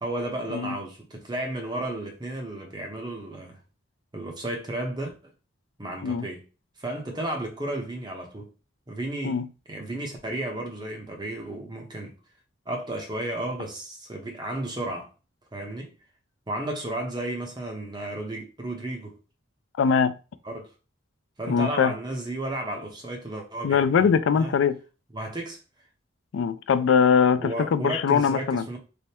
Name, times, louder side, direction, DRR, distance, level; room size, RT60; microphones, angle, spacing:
voice 1, 0.0-3.6 4.1-5.3 5.8-6.4 6.8-8.5 8.9-9.4 9.7-12.1 12.7-15.1 15.5-15.9 16.5-19.2 20.4-20.7 21.4-24.1 24.3-24.5 25.1-25.6 27.4-28.8, right 1 dB, 20° right, 0.7 m, -33 dB
voice 2, 19.8-20.1 21.5-21.9 23.6-24.8 26.3-28.6, left 6 dB, 70° left, 0.3 m, -22 dB
3.4 x 2.1 x 4.2 m
head